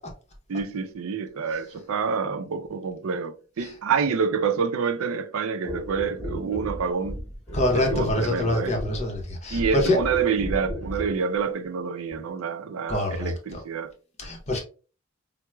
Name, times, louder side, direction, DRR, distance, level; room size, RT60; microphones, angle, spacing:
voice 1, 0.5-7.2 7.9-8.7 9.5-13.9, right 5 dB, 80° right, 0.4 m, -27 dB
sound 1, 5.6-11.2 12.1-12.2, equal, 10° left, 1.0 m, -34 dB
voice 2, 7.5-10.0 12.9-13.6 14.2-14.6, left 1 dB, 30° left, 0.7 m, -25 dB
4.5 x 2.0 x 2.2 m
head